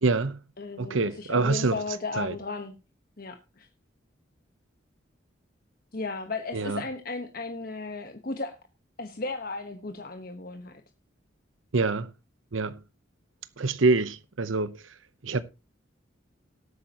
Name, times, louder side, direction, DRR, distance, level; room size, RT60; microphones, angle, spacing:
voice 1, 0.0-0.4 0.8-1.8 2.1-2.4 6.5-6.8 11.7-12.1 12.5-12.8 13.6-14.9 15.2-15.4, right 3 dB, 90° right, 0.9 m, -26 dB
voice 2, 0.6-2.7 3.2-3.7 5.9-8.6 9.0-10.8, left 3 dB, 50° left, 1.2 m, -35 dB
18.5 x 8.6 x 2.9 m
head